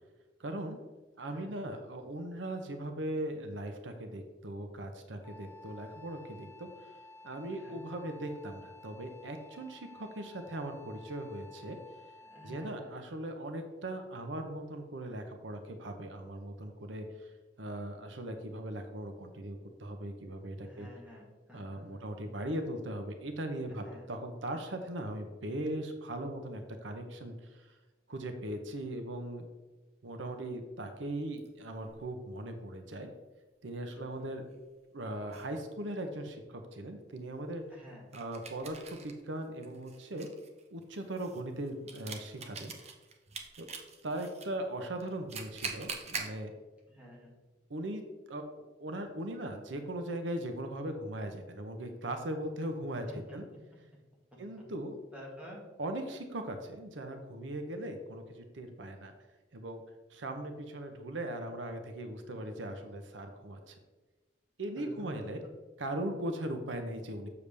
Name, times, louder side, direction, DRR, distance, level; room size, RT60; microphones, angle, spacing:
voice 1, 0.4-0.8 1.2-7.0 7.2-11.8 12.4-17.3 17.6-20.9 21.5-27.7 28.1-29.5 30.0-33.1 33.6-34.4 34.9-37.6 38.1-40.3 40.7-42.7 43.6-43.7 44.0-46.5 47.7-53.1 53.3-53.4 54.4-55.0 55.8-59.1 59.5-59.8 60.1-63.8 64.6-65.4 65.8-67.3, right 1 dB, 90° right, 6 dB, 0.8 m, -39 dB
voice 2, 1.2-1.6 7.5-7.8 12.2-12.9 20.6-22.0 23.7-24.1 34.0-34.5 37.7-38.1 46.9-47.3 53.1-53.4 54.3-54.7 55.1-55.7 64.8-65.3, equal, 5° right, -5 dB, 2.0 m, -51 dB
Wind instrument woodwind instrument, 5.2-12.9, left 2 dB, 15° left, 0.5 m, -53 dB
sound 1, 31.4-32.0 34.5-34.6 35.3-35.5 38.1-39.2 39.6-44.5 45.0-46.3, right 5 dB, 35° right, 0.8 m, -43 dB
6.9 x 6.7 x 3.4 m, 1.2 s
head